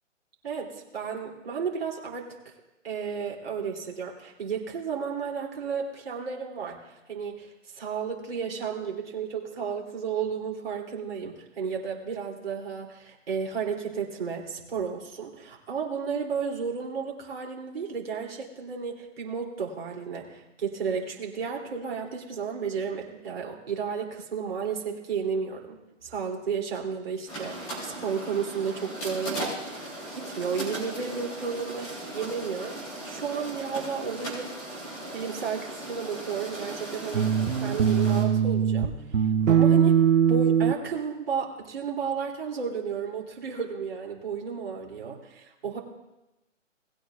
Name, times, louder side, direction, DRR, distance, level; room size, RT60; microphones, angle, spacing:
voice 1, 0.4-2.3 2.8-25.8 26.0-32.8 33.0-34.6 35.1-37.3 37.6-40.0 40.3-45.8, right 6 dB, 50° right, -1 dB, 3.0 m, -33 dB
sound 1, 27.3-38.2, right 1 dB, 10° left, 3.3 m, -38 dB
sound 2, 37.1-38.9 39.1-40.7, right 8 dB, 80° right, 1.1 m, -21 dB
20.0 x 9.1 x 2.4 m, 0.99 s
hypercardioid pair, 175°, 39 cm